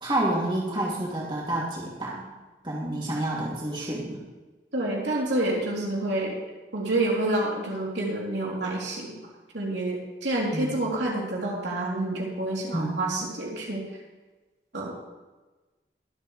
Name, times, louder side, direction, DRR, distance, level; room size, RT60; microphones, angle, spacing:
voice 1, 0.0-2.2 2.6-4.2 10.5-10.7 12.7-13.0, right 1 dB, 25° right, -4 dB, 2.8 m, -29 dB
voice 2, 4.7-6.4 6.7-9.2 9.5-13.9 14.7-14.9, right 1 dB, 85° right, -3 dB, 3.4 m, -28 dB
23.0 x 8.2 x 3.3 m, 1.2 s
head